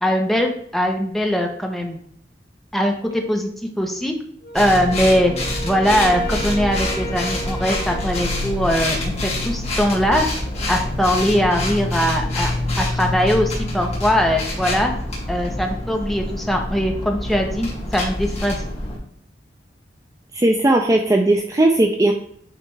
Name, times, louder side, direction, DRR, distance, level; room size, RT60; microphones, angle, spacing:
voice 1, 0.0-2.0 2.7-3.5 3.8-4.1 4.5-5.3 5.6-10.3 10.7-12.5 12.8-14.9 15.3-18.6, equal, ahead, 2 dB, 0.9 m, -21 dB
Wind instrument woodwind instrument, 4.4-8.8, right 2 dB, 60° left, 0.9 m, -34 dB
sound 1, 4.5-19.0, left 1 dB, 40° left, 2.1 m, -26 dB
sound 2, 5.8-18.0, equal, 80° left, 2.4 m, -36 dB
voice 2, 20.3-22.1, right 1 dB, 20° right, 3 dB, 0.4 m, -17 dB
9.1 x 3.3 x 3.3 m, 0.66 s
head